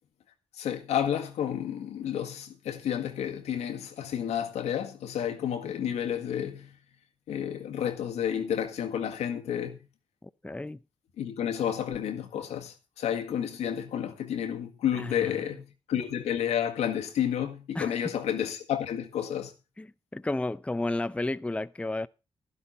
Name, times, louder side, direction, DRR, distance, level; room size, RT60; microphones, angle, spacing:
voice 1, 0.5-6.8 7.3-9.8 11.2-19.5, left 9 dB, 85° left, 1.8 m, -31 dB
voice 2, 10.2-10.8 14.9-15.3 17.7-18.0 19.8-19.9 20.1-22.1, left 2 dB, 10° left, 0.6 m, -32 dB
11.5 x 11.5 x 4.1 m
supercardioid pair, 55°, 11 cm